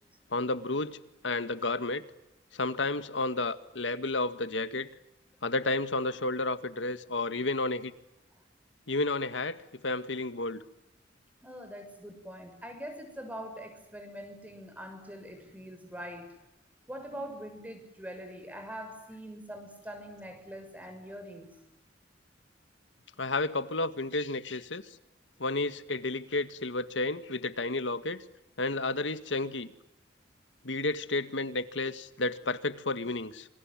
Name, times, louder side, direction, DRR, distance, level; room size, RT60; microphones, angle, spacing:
voice 1, 0.3-1.0 1.2-2.0 2.5-4.9 5.4-7.9 8.9-10.6 23.2-24.8 25.4-28.2 28.6-29.7 30.6-33.5, left 2 dB, 85° left, 11 dB, 1.9 m, -31 dB
voice 2, 11.4-16.3 16.9-21.6, equal, 10° right, 7 dB, 6.7 m, -43 dB
27.5 x 27.0 x 7.7 m, 0.87 s
head